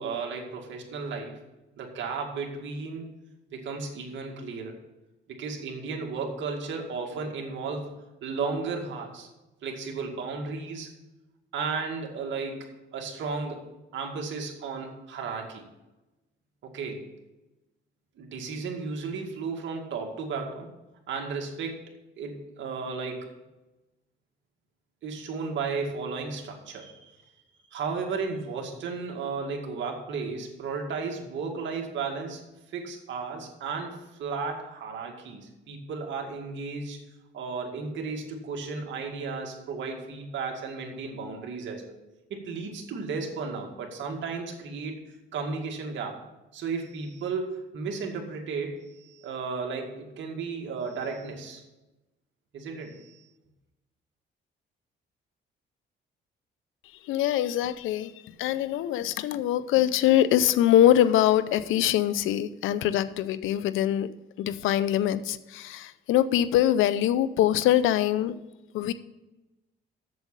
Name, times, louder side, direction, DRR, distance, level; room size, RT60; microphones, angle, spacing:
voice 1, 0.0-1.4 1.8-3.1 3.5-4.8 5.3-9.3 9.6-10.9 11.5-13.7 13.9-15.7 16.6-17.0 18.2-20.7 21.1-21.9 22.2-23.3 25.0-27.3 27.7-32.4 32.7-37.0 37.3-42.0 42.3-45.0 45.3-46.2 46.5-51.6 52.5-53.2, right 4 dB, 70° right, 2.1 m, -34 dB
voice 2, 57.0-58.1 58.4-64.1 64.4-68.3 68.7-68.9, left 12 dB, 90° left, 0.6 m, -23 dB
7.8 x 7.2 x 8.2 m
cardioid pair, 90°, 20 cm